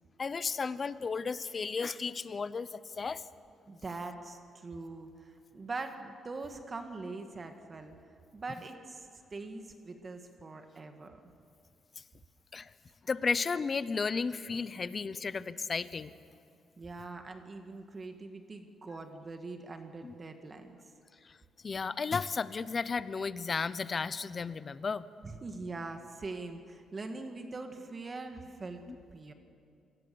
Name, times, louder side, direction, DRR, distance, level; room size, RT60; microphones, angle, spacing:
voice 1, 0.2-3.2 12.5-12.7 13.1-16.1 20.0-20.1 21.6-25.1 28.9-29.0, left 5 dB, 35° left, 16 dB, 0.8 m, -33 dB
voice 2, 3.7-7.9 8.3-11.2 16.8-20.8 25.2-28.8 29.1-29.3, right 3 dB, 35° right, 6 dB, 1.8 m, -42 dB
26.0 x 19.0 x 7.0 m, 2.5 s
cardioid pair, 90°, 0 cm